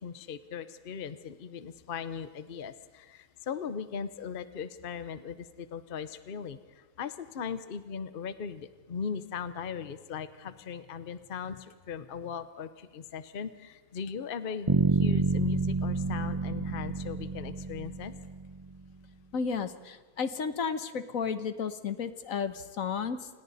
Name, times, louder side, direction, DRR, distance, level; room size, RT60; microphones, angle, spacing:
voice 1, 0.0-18.1, left 6 dB, 45° left, 11 dB, 1.0 m, -39 dB
Bass guitar, 14.7-18.6, right 4 dB, 25° right, 0.8 m, -28 dB
voice 2, 19.3-23.3, left 6 dB, 65° left, 11 dB, 1.4 m, -33 dB
29.0 x 27.5 x 4.1 m, 1.3 s
omnidirectional pair, 1.6 m